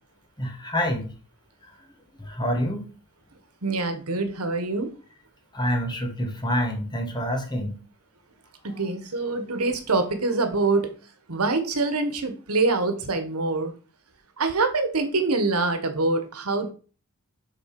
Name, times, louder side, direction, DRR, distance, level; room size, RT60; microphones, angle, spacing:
voice 1, 0.4-1.1 1.7-1.8 2.2-2.9 5.5-7.8 8.7-8.8, equal, 20° left, 3 dB, 1.5 m, -27 dB
voice 2, 3.6-4.9 8.6-10.9 11.3-13.7 14.4-16.7, right 3 dB, 80° right, 8 dB, 1.3 m, -25 dB
7.1 x 4.1 x 5.8 m, 0.38 s
head